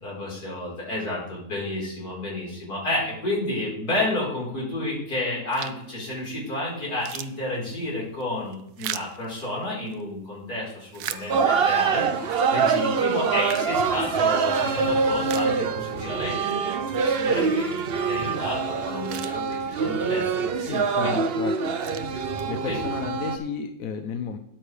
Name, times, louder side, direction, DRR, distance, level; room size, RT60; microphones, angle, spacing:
voice 1, 0.0-17.7 18.1-20.2 20.5-21.2 22.6-22.8, left 1 dB, 85° left, -4 dB, 4.7 m, -31 dB
sound 1, 5.5-6.0 6.5-6.6 6.8-10.0 10.5-11.8 12.3-12.4 13.1-14.5 14.9-15.0 15.2-16.1 16.4-16.5 18.5-18.6 18.9-20.0 20.6-20.9 21.5-22.7, right 11 dB, 85° right, 1.1 m, -39 dB
sound 2, 11.0-20.4, right 1 dB, 20° right, 1.9 m, -46 dB
sound 3, 11.3-23.4, right 5 dB, 50° right, 0.8 m, -25 dB
voice 2, 20.7-21.8 22.5-24.4, left 6 dB, 70° left, 7 dB, 1.2 m, -33 dB
13.0 x 9.1 x 3.2 m, 0.77 s
omnidirectional pair, 1.6 m